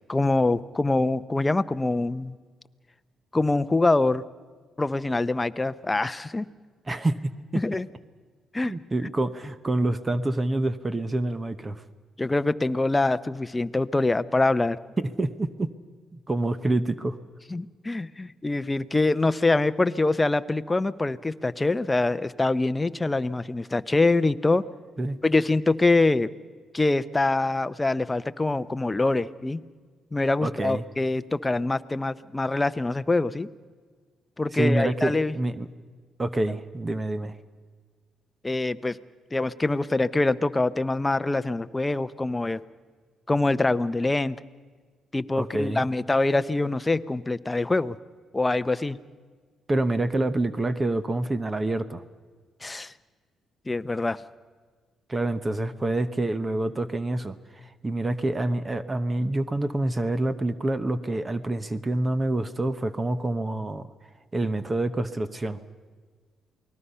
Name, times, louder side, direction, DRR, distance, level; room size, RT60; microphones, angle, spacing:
voice 1, 0.1-2.4 3.3-4.2 4.8-6.5 7.5-7.9 8.5-8.7 12.2-14.8 17.5-24.6 25.2-26.3 26.7-29.6 30.1-33.5 34.4-35.3 38.4-39.0 39.3-42.6 43.3-44.4 45.1-48.0 48.3-49.0 52.6-52.9 53.7-54.2, left 2 dB, 15° left, 13 dB, 0.7 m, -24 dB
voice 2, 6.9-7.2 7.5-7.6 8.6-11.8 15.0-15.7 16.1-17.2 25.0-25.2 30.4-30.8 34.5-35.7 36.2-37.4 45.4-45.9 49.7-52.0 55.1-63.9 64.3-65.6, right 2 dB, 20° right, 12 dB, 0.9 m, -27 dB
28.5 x 19.5 x 5.6 m, 1.5 s
cardioid pair, 90°, 0 cm